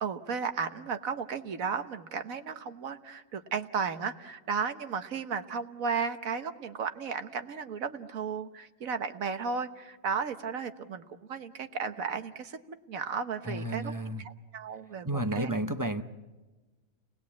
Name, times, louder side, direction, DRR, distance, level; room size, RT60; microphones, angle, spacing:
voice 1, 0.0-11.0 11.3-13.9 14.2-15.5, right 6 dB, 60° right, 9 dB, 1.5 m, -34 dB
voice 2, 13.4-14.2 15.0-16.0, right 1 dB, 20° right, 9 dB, 0.5 m, -31 dB
30.0 x 20.0 x 8.5 m, 1.2 s
omnidirectional pair, 1.7 m